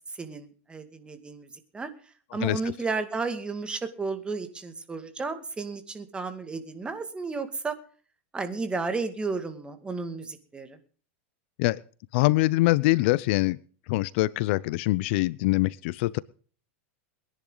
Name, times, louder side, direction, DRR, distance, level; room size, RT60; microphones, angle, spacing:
voice 1, 0.2-1.5 1.7-1.9 2.3-7.8 8.3-10.8, right 4 dB, 15° right, 8 dB, 2.2 m, -33 dB
voice 2, 12.1-13.6 13.9-16.2, left 20 dB, 60° left, 21 dB, 0.6 m, -24 dB
22.5 x 10.5 x 4.0 m, 0.42 s
supercardioid pair, 130°, 7 cm